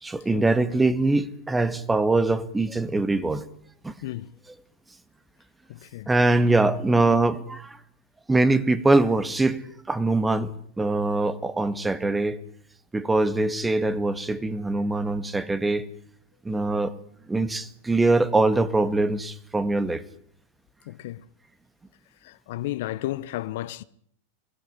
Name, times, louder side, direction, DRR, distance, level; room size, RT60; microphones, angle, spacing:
voice 1, 0.0-3.5 3.8-3.9 6.1-7.8 8.3-12.4 12.9-15.9 16.5-16.9 17.3-20.0, right 2 dB, 10° right, 1.7 m, -23 dB
voice 2, 5.7-6.1 20.9-21.2 22.2-23.8, left 15 dB, 65° left, 1.0 m, -33 dB
23.0 x 17.0 x 9.9 m
hypercardioid pair, 105°, 0 cm